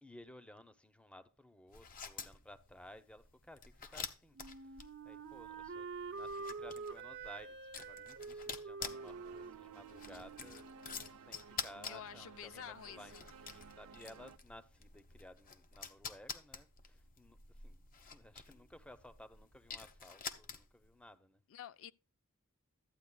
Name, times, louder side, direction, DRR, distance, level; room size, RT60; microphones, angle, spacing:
voice 1, 0.0-10.6 11.2-21.4, left 1 dB, 5° left, 0.7 m, -57 dB
sound 1, 1.7-20.9, left 6 dB, 40° left, 1.0 m, -49 dB
Wind instrument woodwind instrument, 4.3-11.2, right 4 dB, 55° right, 0.9 m, -47 dB
sound 2, 8.8-14.4, right 6 dB, 85° right, 0.5 m, -56 dB
voice 2, 11.9-13.2 21.5-21.9, left 10 dB, 65° left, 0.4 m, -49 dB
13.5 x 9.1 x 2.2 m
head